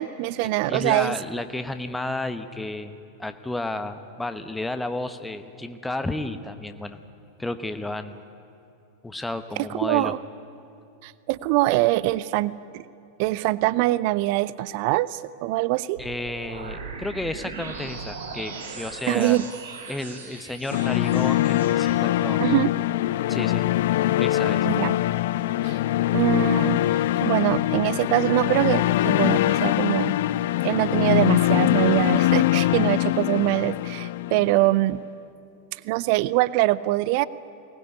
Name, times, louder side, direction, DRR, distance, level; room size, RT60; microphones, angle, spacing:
voice 1, 0.0-1.1 9.6-10.2 11.0-12.8 13.2-16.0 19.1-19.5 22.4-22.7 24.6-24.9 25.6-25.8 26.1-30.1 30.6-35.0 35.8-37.2, right 17 dB, 45° right, 19 dB, 0.5 m, -23 dB
voice 2, 0.7-2.9 3.2-7.0 7.4-8.2 9.0-10.1 16.0-19.4 19.9-22.4 23.3-23.7 24.2-24.7, left 2 dB, 5° left, 9 dB, 1.0 m, -32 dB
sound 1, 16.0-21.9, right 4 dB, 65° right, 4.3 m, -38 dB
sound 2, 20.7-34.8, left 15 dB, 55° left, 0.5 m, -23 dB
23.0 x 19.0 x 9.6 m, 2.8 s
figure-of-eight pair, 90°, 0 cm